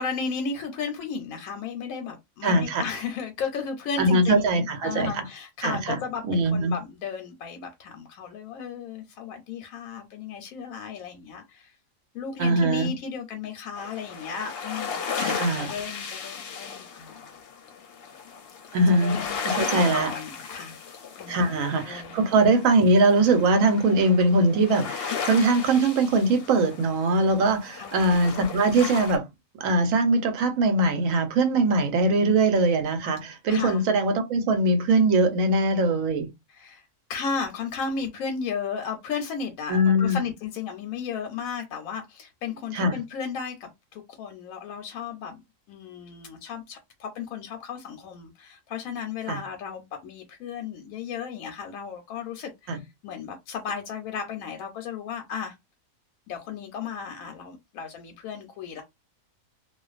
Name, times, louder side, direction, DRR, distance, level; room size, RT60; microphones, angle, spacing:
voice 1, 0.0-11.8 12.1-17.4 18.9-20.8 21.2-22.2 27.7-28.1 33.5-33.8 36.5-45.4 45.7-55.6 56.3-58.8, left 6 dB, 85° left, 1.0 m, -35 dB
voice 2, 2.4-2.8 4.0-5.2 5.6-6.0 6.3-6.7 12.4-12.9 15.2-15.7 18.7-19.2 19.4-20.1 21.3-29.2 29.6-36.3 39.7-40.2 42.7-43.0 49.3-49.4 52.7-52.8, right 2 dB, 80° right, 1.0 m, -22 dB
sound 1, 13.8-29.2, left 6 dB, 60° left, 0.7 m, -35 dB
2.4 x 2.2 x 2.4 m
omnidirectional pair, 1.4 m